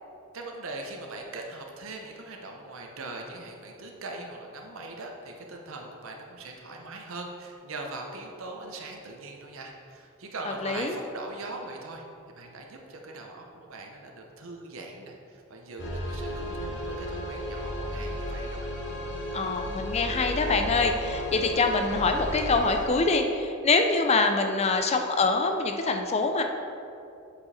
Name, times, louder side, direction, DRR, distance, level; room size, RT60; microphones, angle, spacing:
voice 1, 0.3-12.0 12.4-18.7, right 2 dB, 70° right, 1 dB, 0.8 m, -41 dB
voice 2, 10.5-11.0 19.3-26.4, left 3 dB, 30° left, 5 dB, 0.4 m, -25 dB
sound 1, 15.8-22.9, left 1 dB, 60° left, 1.1 m, -33 dB
7.5 x 5.1 x 4.2 m, 2.6 s
head